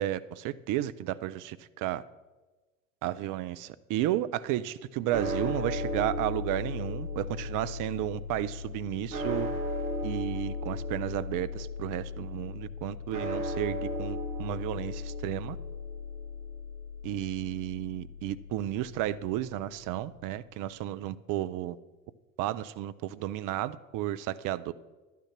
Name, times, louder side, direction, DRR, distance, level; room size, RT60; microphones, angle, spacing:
voice 1, 0.0-2.0 3.0-9.5 10.0-15.6 17.0-21.8 22.4-24.7, right 13 dB, 50° right, 0.6 m, -33 dB
sound 1, 5.1-19.4, left 2 dB, 90° right, 1.2 m, -36 dB
11.5 x 9.4 x 5.9 m
hypercardioid pair, 70°, 41 cm